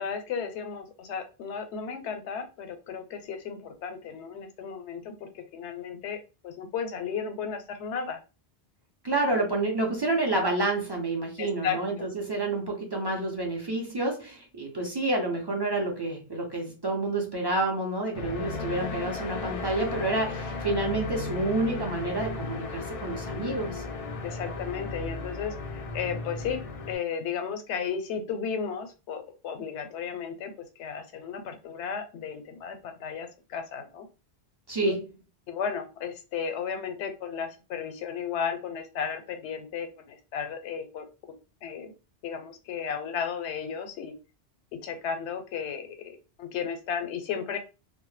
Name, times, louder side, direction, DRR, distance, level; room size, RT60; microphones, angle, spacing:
voice 1, 0.0-6.2 6.4-8.2 11.4-11.8 24.2-26.6 26.9-30.5 30.8-34.1 34.8-35.0 35.5-41.0 41.6-41.9 42.2-44.1 44.8-47.6, left 6 dB, 80° left, 0.8 m, -34 dB
voice 2, 9.0-23.8 34.7-35.0, right 2 dB, 40° right, 0.4 m, -29 dB
sound 1, 18.1-27.0, left 3 dB, 65° left, 0.3 m, -35 dB
2.1 x 2.0 x 3.1 m
omnidirectional pair, 1.1 m